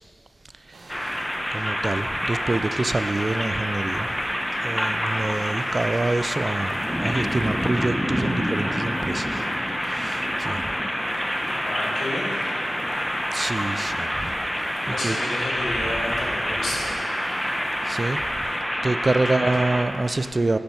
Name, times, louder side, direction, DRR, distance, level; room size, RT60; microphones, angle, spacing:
voice 1, 0.7-1.2 1.5-4.2 4.5-9.4 9.8-10.7 13.3-14.3 14.6-15.2 17.8-18.3 18.8-20.6, right 2 dB, 35° right, 0.3 m, -27 dB
sound 1, 0.7-18.6, right 2 dB, 80° right, 1.0 m, -45 dB
sound 2, 0.9-19.8, equal, 5° left, 0.8 m, -27 dB
voice 2, 11.6-12.5 14.8-17.0 19.2-19.5, left 1 dB, 85° left, 2.2 m, -30 dB
10.5 x 5.4 x 4.4 m
cardioid pair, 55°, 0 cm